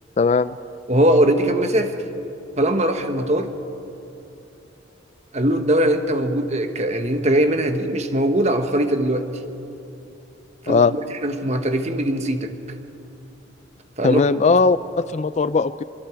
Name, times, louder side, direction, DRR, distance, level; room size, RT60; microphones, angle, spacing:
voice 1, 0.2-0.5 10.7-10.9 14.0-15.8, left 4 dB, 35° left, 15 dB, 0.4 m, -18 dB
voice 2, 0.9-2.0 2.6-3.5 5.3-9.3 10.6-12.5 14.0-14.2, right 1 dB, 35° right, 6 dB, 1.4 m, -20 dB
25.5 x 23.5 x 4.6 m, 2.8 s
head